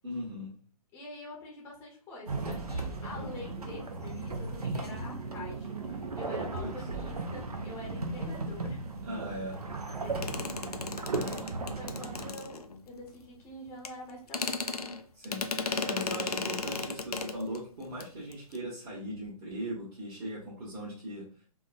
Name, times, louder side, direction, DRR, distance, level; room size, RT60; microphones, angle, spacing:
voice 1, 0.0-0.5 6.5-6.7 9.0-9.6 11.1-11.5 15.1-21.2, equal, 35° right, -8 dB, 1.1 m, -39 dB
voice 2, 0.9-8.8 10.0-10.6 10.9-14.8, left 1 dB, 10° left, -2 dB, 0.6 m, -46 dB
sound 1, 2.3-12.3, right 3 dB, 85° right, 0.6 m, -36 dB
sound 2, 10.2-13.0 13.8-13.9 14.3-17.6 17.9-18.1 18.3-18.6, left 4 dB, 90° left, 0.4 m, -35 dB
3.5 x 2.1 x 2.3 m, 0.39 s
figure-of-eight pair, 130°, 19 cm